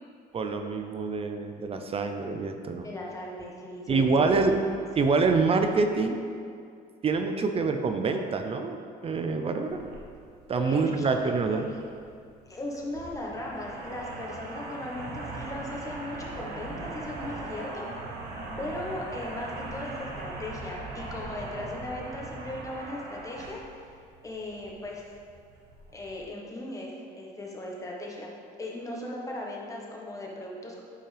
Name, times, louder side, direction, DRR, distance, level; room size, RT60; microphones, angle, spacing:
voice 1, 0.3-2.9 3.9-4.6 5.0-6.2 7.0-9.8 10.5-11.7, right 4 dB, 35° right, 6 dB, 0.6 m, -26 dB
voice 2, 2.8-4.3 10.5-11.1 11.5-11.6 12.5-17.9 18.6-23.9 24.2-25.0 25.9-28.3 28.6-30.8, left 1 dB, 20° left, -2 dB, 1.4 m, -38 dB
sound 1, 9.7-26.2, right 2 dB, 85° right, 1.2 m, -40 dB
8.8 x 5.3 x 3.4 m, 2.3 s
cardioid pair, 110°, 17 cm